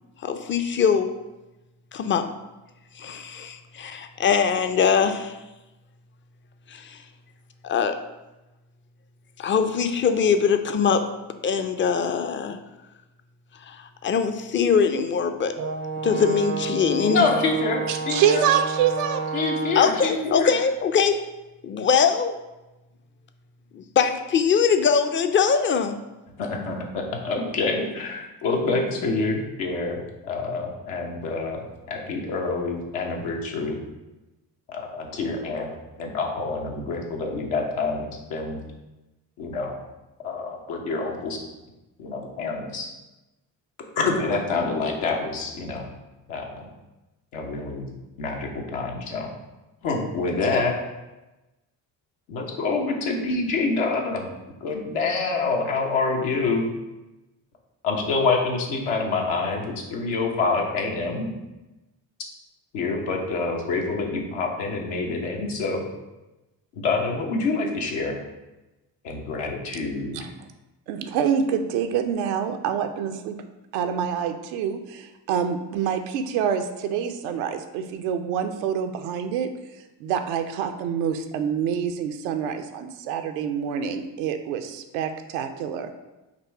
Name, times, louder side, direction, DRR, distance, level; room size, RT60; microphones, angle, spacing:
voice 1, 0.2-1.1 1.9-2.2 3.0-5.4 6.7-7.0 7.6-8.0 9.4-11.0 11.4-12.6 13.7-15.5 16.0-17.3 19.8-21.2 21.6-22.4 23.7-26.0, left 6 dB, 25° left, 8 dB, 0.4 m, -22 dB
Brass instrument, 15.6-20.0, right 4 dB, 35° right, 0.4 m, -30 dB
voice 2, 17.1-18.4 19.3-20.5 26.4-31.6 31.9-33.8 34.7-35.7 36.0-38.6 39.4-39.7 40.2-41.4 42.0-42.9 44.0-45.9 46.3-46.7 47.3-47.9 48.2-49.3 49.8-50.7 52.3-54.3 54.6-56.7 57.8-61.3 62.7-65.8 66.7-68.2 69.0-70.2, left 3 dB, 80° left, 0 dB, 0.9 m, -26 dB
voice 3, 17.9-19.2 70.1-70.3 70.9-73.4 73.7-79.5 80.0-85.9, right 8 dB, 85° right, 7 dB, 0.6 m, -26 dB
4.1 x 2.6 x 4.5 m, 1.0 s
hypercardioid pair, 45°, 49 cm